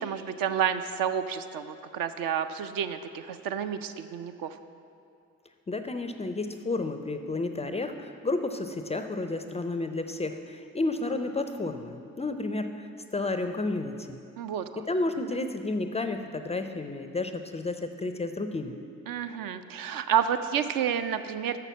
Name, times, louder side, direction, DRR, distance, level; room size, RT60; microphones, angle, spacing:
voice 1, 0.0-4.6 14.4-14.8 19.1-21.6, right 8 dB, 55° right, 9 dB, 0.5 m, -30 dB
voice 2, 5.7-12.9 13.1-14.2 14.9-18.8, left 2 dB, 15° left, 8 dB, 0.4 m, -31 dB
6.6 x 5.8 x 7.2 m, 2.4 s
figure-of-eight pair, 40°, 41 cm